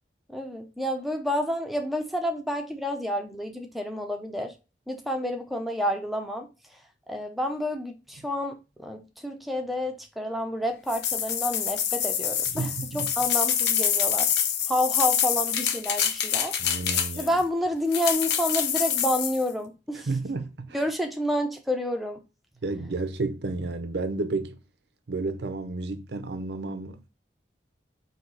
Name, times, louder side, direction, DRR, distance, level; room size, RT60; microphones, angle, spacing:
voice 1, 0.3-4.5 4.9-6.5 7.1-14.3 14.7-16.5 17.2-20.1 20.7-22.2, equal, ahead, 0.6 m, -29 dB
sound 1, 10.9-17.4 17.9-19.4, left 8 dB, 65° left, 0.6 m, -26 dB
voice 2, 12.5-13.1 16.6-17.4 20.0-20.8 22.6-24.6 25.1-27.1, right 3 dB, 70° right, 0.5 m, -31 dB
4.5 x 2.8 x 4.0 m
head